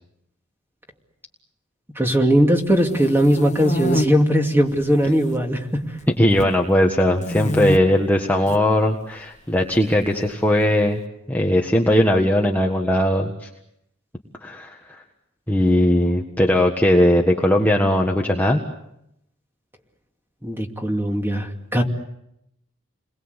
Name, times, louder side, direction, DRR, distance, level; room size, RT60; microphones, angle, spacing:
voice 1, 2.0-5.8 20.4-21.8, equal, 10° right, 3 dB, 2.6 m, -19 dB
sound 1, 2.7-4.1 4.7-5.3 5.6-6.6 7.2-7.8 8.3-8.6 9.7-10.6, left 1 dB, 35° left, 1.1 m, -27 dB
voice 2, 6.2-11.0 11.3-13.5 14.4-15.0 15.5-18.6, left 1 dB, 10° left, 0 dB, 1.6 m, -19 dB
30.0 x 22.0 x 8.2 m, 0.82 s
head